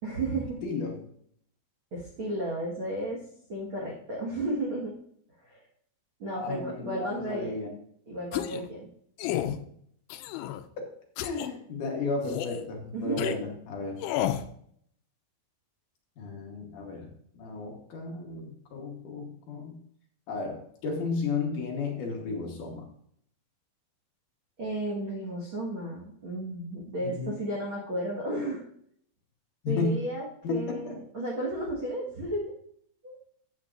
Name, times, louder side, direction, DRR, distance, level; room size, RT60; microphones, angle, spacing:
voice 1, 0.0-0.6 1.9-3.2 3.5-4.9 5.4-5.6 6.2-7.6 8.1-8.9 12.9-13.4 24.6-28.6 29.7-32.5 33.0-33.2, right 1 dB, 80° right, -2 dB, 1.1 m, -33 dB
voice 2, 0.6-1.1 6.3-7.7 9.4-9.6 10.8-10.9 11.2-14.0 16.2-19.8 20.3-22.9 27.0-27.3 29.6-29.9 30.4-31.0, left 4 dB, 65° left, 0 dB, 2.2 m, -33 dB
sound 1, 8.3-8.7 9.2-9.6 10.1-10.6 11.2-11.5 12.2-12.6 13.2-13.4 14.0-14.5, left 12 dB, 85° left, 2.5 m, -31 dB
12.5 x 8.1 x 2.5 m, 0.66 s
omnidirectional pair, 5.0 m